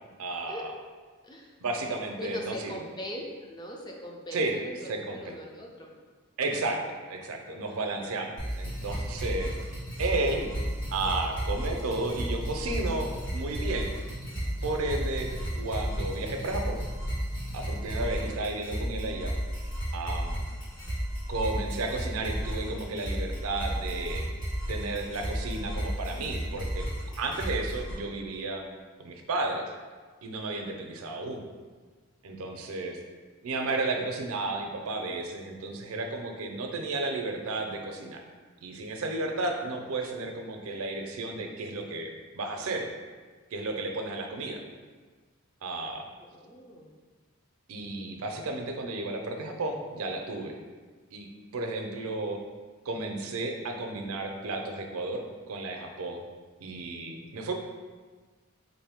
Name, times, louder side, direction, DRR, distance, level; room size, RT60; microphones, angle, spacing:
voice 1, 0.2-0.7 1.6-2.7 4.3-4.5 4.9-5.2 6.4-6.8 7.1-9.6 10.0-10.5 10.9-13.9 14.6-15.3 15.6-16.8 17.5-19.3 19.9-20.4 21.3-24.2 24.7-26.9 27.2-28.6 29.0-29.7 30.2-31.5 32.2-33.0 33.4-38.2 38.6-42.9 43.5-44.6 45.6-46.1 47.7-50.6 51.1-51.3 51.5-52.4 52.9-56.2 56.6-57.5, right 2 dB, 80° right, 3 dB, 0.5 m, -33 dB
voice 2, 1.2-1.5 2.2-5.9 46.2-46.9, equal, 20° left, 0 dB, 0.4 m, -40 dB
sound 1, 8.4-27.9, equal, 60° left, 1.4 m, -33 dB
3.9 x 2.6 x 3.5 m, 1.4 s
head